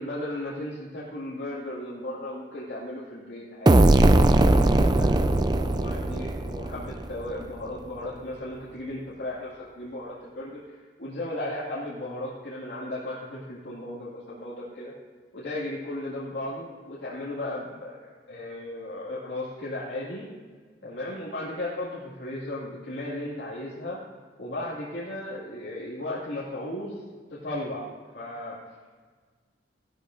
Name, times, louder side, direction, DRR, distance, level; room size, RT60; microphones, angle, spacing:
voice 1, 0.0-14.9 15.3-20.3 20.8-24.0 24.4-26.9 27.4-27.8 28.1-28.5, left 1 dB, 65° left, -9 dB, 2.1 m, -35 dB
sound 1, 3.7-7.3, right 2 dB, 20° right, 0.4 m, -20 dB
14.5 x 12.0 x 2.6 m, 1.5 s
head